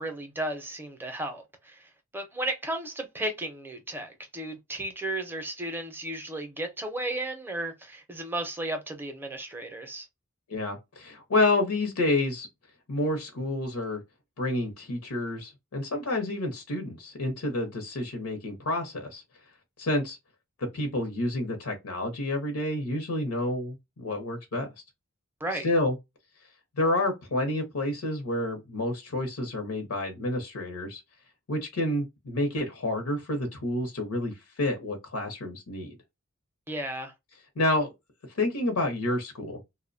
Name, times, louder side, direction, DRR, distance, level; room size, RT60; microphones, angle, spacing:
voice 1, 0.0-10.1 25.4-25.7 36.7-37.1, right 1 dB, 10° right, 0.5 m, -34 dB
voice 2, 10.5-12.5 12.9-14.0 14.4-19.2 19.8-20.2 20.6-24.7 25.6-26.0 26.8-31.0 31.5-36.0 37.6-37.9 38.3-39.6, left 1 dB, 80° left, 0.7 m, -29 dB
2.6 x 2.1 x 2.5 m
head